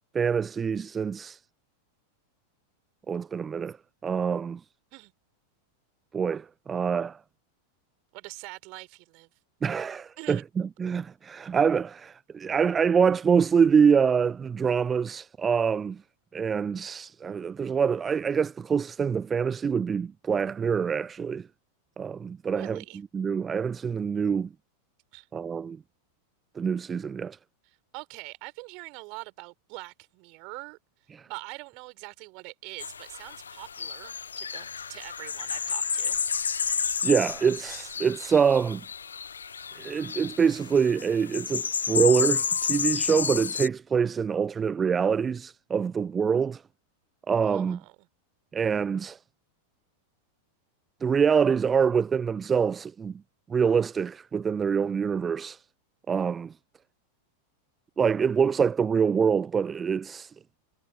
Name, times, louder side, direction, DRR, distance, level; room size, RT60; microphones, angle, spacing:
voice 1, 0.1-1.4 3.1-3.8 4.0-4.6 6.1-7.2 9.6-16.0 16.3-21.5 22.0-22.8 23.1-24.5 25.3-25.8 26.6-27.4 31.1-31.3 37.0-38.8 39.7-46.6 47.3-47.8 48.5-49.2 51.0-53.1 53.5-55.6 56.1-56.5 58.0-60.3, right 6 dB, 20° right, 0.4 m, -25 dB
voice 2, 8.1-9.3 10.2-10.4 22.4-23.0 25.1-25.3 27.6-30.8 31.3-36.2 47.4-48.1, right 31 dB, 45° right, 4.2 m, -44 dB
sound 1, 32.8-43.7, left 6 dB, 70° left, 0.3 m, -31 dB
figure-of-eight pair, 90°, 0 cm